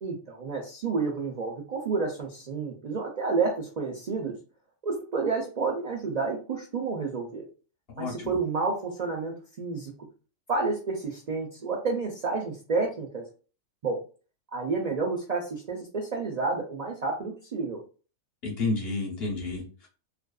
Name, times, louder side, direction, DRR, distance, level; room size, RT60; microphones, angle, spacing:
voice 1, 0.0-4.3 4.8-7.4 8.0-9.9 10.5-13.2 13.8-14.0 14.5-17.8, right 4 dB, 80° right, -1 dB, 0.3 m, -30 dB
voice 2, 7.9-8.4 18.4-19.9, left 3 dB, 50° left, -1 dB, 0.9 m, -31 dB
2.5 x 2.4 x 2.2 m, 0.36 s
omnidirectional pair, 1.4 m